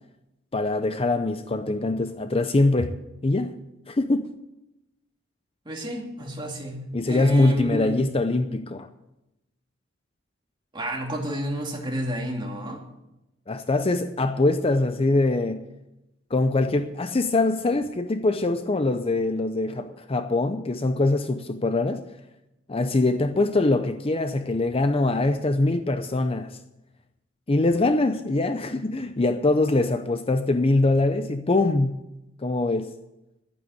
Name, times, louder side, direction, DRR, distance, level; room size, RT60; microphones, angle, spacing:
voice 1, 0.5-2.9 3.2-3.5 3.9-4.3 6.9-8.9 13.5-15.6 16.3-22.1 22.7-26.6 27.5-32.0 32.4-32.9, left 2 dB, 30° left, 0.6 m, -23 dB
voice 2, 5.7-7.9 10.7-12.8, equal, 25° right, 2.4 m, -31 dB
11.5 x 9.3 x 7.9 m
head